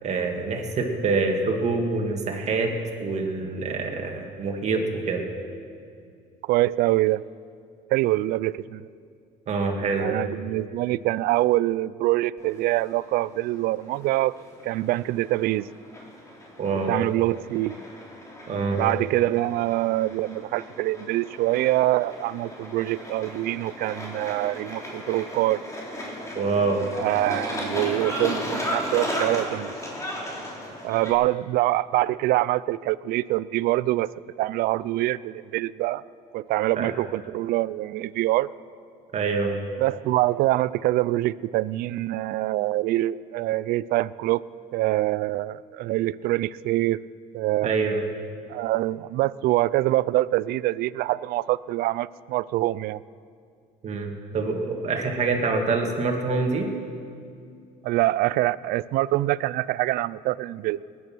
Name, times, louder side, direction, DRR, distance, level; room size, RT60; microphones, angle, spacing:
voice 1, 0.0-2.7 3.0-5.2 9.5-10.1 16.6-16.9 18.5-18.8 26.3-26.9 36.8-36.9 39.1-39.5 47.6-48.0 53.8-56.7, right 4 dB, 45° right, 2 dB, 2.4 m, -25 dB
voice 2, 6.5-7.2 7.9-8.9 10.0-14.3 14.6-15.7 16.7-17.8 18.8-25.6 27.0-29.7 30.8-34.1 34.4-36.0 36.3-38.5 39.8-44.4 44.7-47.0 47.3-47.7 48.5-53.0 57.8-60.8, right 16 dB, 70° right, 20 dB, 0.4 m, -25 dB
sound 1, 12.4-31.1, equal, 20° left, 3.4 m, -35 dB
20.5 x 9.5 x 6.2 m, 2.3 s
cardioid pair, 105°, 16 cm